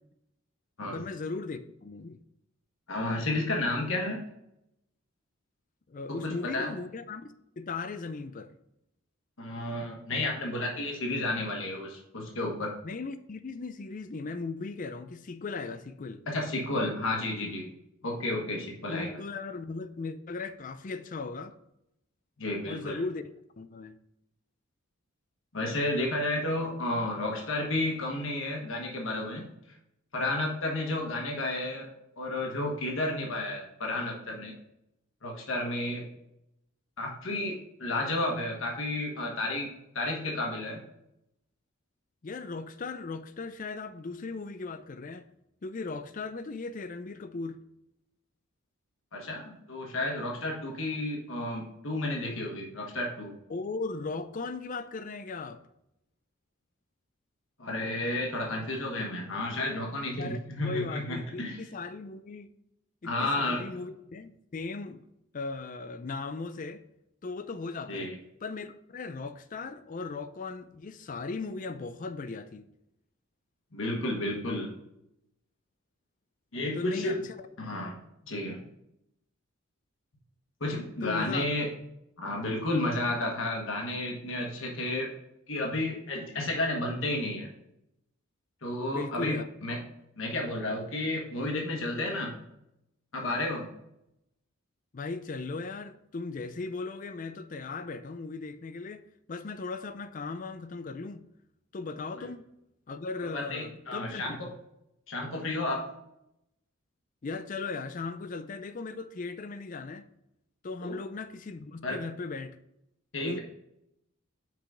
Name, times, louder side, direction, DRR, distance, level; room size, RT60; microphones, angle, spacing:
voice 1, 0.9-2.2 5.9-8.5 12.8-16.2 18.9-21.5 22.6-23.2 23.6-24.0 42.2-45.3 45.6-47.6 53.5-55.6 60.1-62.5 63.0-65.0 65.3-66.8 67.2-68.1 68.4-72.7 76.7-77.2 81.0-81.5 88.9-89.4 94.9-99.0 99.3-101.2 101.7-102.4 102.9-104.4 107.2-110.1 110.6-112.6 113.2-113.4, left 3 dB, 40° left, 0.4 m, -37 dB
voice 2, 2.9-4.2 6.1-6.7 9.4-12.7 16.3-17.7 18.0-19.1 22.4-23.0 25.5-29.5 30.1-31.9 32.2-34.5 35.2-36.1 37.0-40.8 49.1-53.3 57.6-61.6 63.0-63.6 67.9-68.2 73.7-74.7 76.5-77.2 77.6-78.0 78.3-78.6 80.6-81.7 82.2-85.1 85.5-87.5 88.6-89.8 90.2-92.4 93.1-93.7 102.2-102.3 103.3-104.5 105.1-105.8 110.8-110.9 111.8-112.0 113.1-113.4, left 2 dB, 65° left, 1.4 m, -32 dB
5.8 x 4.9 x 3.8 m
head